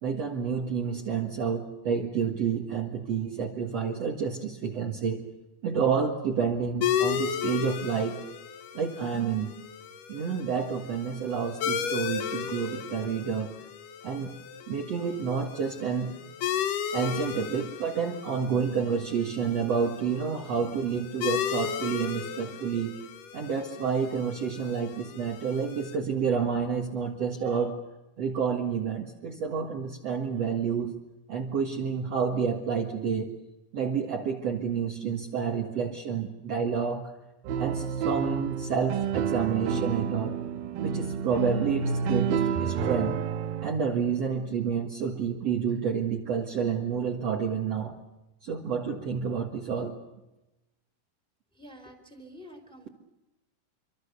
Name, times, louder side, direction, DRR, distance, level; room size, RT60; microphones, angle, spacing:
voice 1, 0.0-5.3 5.6-8.2 8.7-9.5 10.1-13.5 14.0-14.3 14.7-16.1 16.9-23.0 23.3-27.8 28.2-31.0 31.3-33.3 33.7-37.1 37.6-40.4 40.8-43.2 43.6-48.0 48.4-49.9, right 6 dB, 50° right, 1 dB, 2.5 m, -29 dB
sound 1, 6.8-26.0, left 9 dB, 70° left, 2.8 m, -35 dB
sound 2, 37.5-43.7, right 6 dB, 85° right, 2.9 m, -29 dB
voice 2, 51.6-52.9, equal, ahead, 5 dB, 3.5 m, -48 dB
27.0 x 25.0 x 6.9 m, 0.99 s
omnidirectional pair, 4.1 m